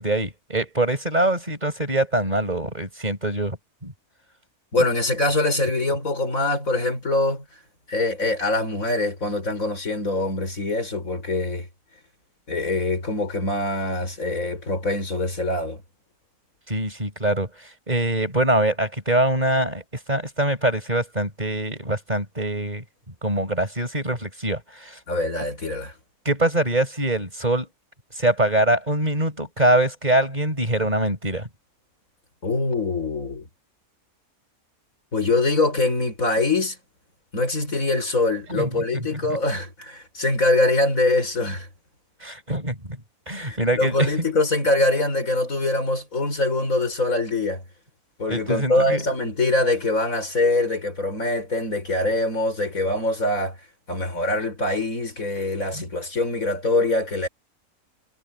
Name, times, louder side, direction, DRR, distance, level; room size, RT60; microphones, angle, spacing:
voice 1, 0.0-3.6 3.8-3.9 16.7-19.8 20.1-22.8 23.2-25.0 26.3-27.7 28.1-31.5 38.5-39.2 42.2-43.0 43.3-44.1 48.3-49.0 55.7-55.8, right 1 dB, 30° right, 5.5 m, -24 dB
voice 2, 4.7-7.4 7.9-11.7 12.5-15.8 25.1-25.9 32.4-33.5 35.1-36.8 37.3-41.7 43.3-47.6 48.2-53.6 53.9-57.3, left 2 dB, 70° left, 5.8 m, -23 dB
omnidirectional pair, 1.5 m